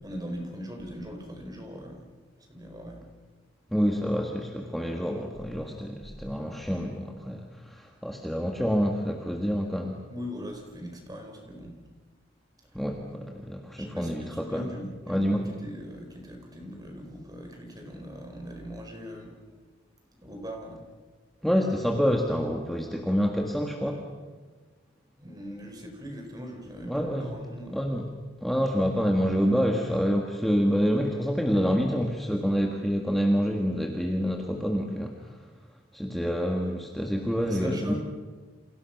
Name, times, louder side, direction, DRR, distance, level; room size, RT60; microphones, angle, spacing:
voice 1, 0.0-2.0 2.5-3.0 10.1-11.8 13.8-19.4 20.2-20.8 25.2-27.9 37.5-38.0, equal, 20° right, 2 dB, 4.8 m, -40 dB
voice 2, 3.7-10.0 12.7-14.7 15.1-15.5 21.4-24.1 26.9-27.3 27.7-28.1 28.4-35.4 35.9-37.9, equal, ahead, 1 dB, 1.7 m, -27 dB
29.5 x 28.0 x 6.0 m, 1.4 s
head